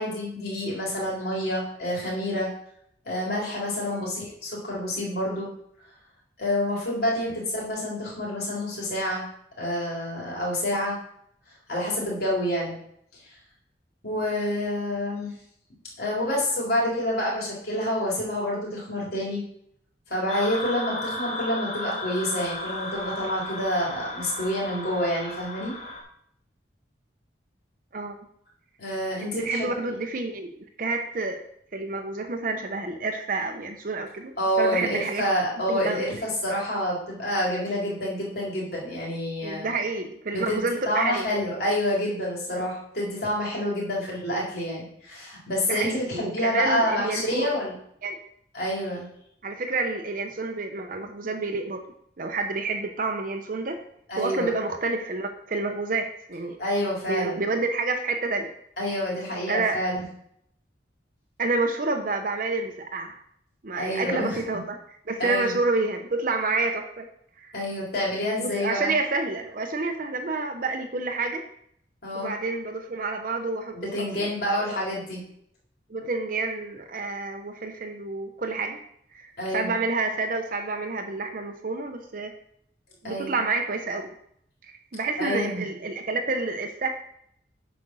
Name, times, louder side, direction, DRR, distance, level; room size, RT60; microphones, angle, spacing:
voice 1, 0.0-2.5 3.0-5.5 6.4-9.2 9.6-11.0 11.7-12.7 14.0-15.3 16.0-19.4 20.1-25.7 28.8-29.7 34.4-39.7 40.3-47.7 48.5-49.1 54.1-54.5 56.6-57.4 58.8-60.0 63.8-64.4 65.2-65.5 67.5-68.9 72.0-72.3 73.7-75.2 79.4-79.8 83.0-83.4 85.2-85.6, left 1 dB, 60° left, -5 dB, 3.9 m, -28 dB
sound 1, 20.3-26.0, left 2 dB, 35° left, 1.5 m, -34 dB
voice 2, 29.2-30.5 30.8-31.4 31.7-34.3 34.6-35.2 35.7-36.1 39.4-41.3 45.7-47.5 48.0-48.2 49.4-51.8 52.2-53.8 54.2-58.5 59.5-59.8 61.4-63.1 63.6-67.1 67.4-67.5 68.4-71.4 72.1-74.1 75.9-78.8 79.1-82.3 83.0-84.1 84.6-86.9, right 3 dB, 50° right, 5 dB, 0.8 m, -29 dB
8.7 x 5.2 x 6.1 m, 0.70 s
head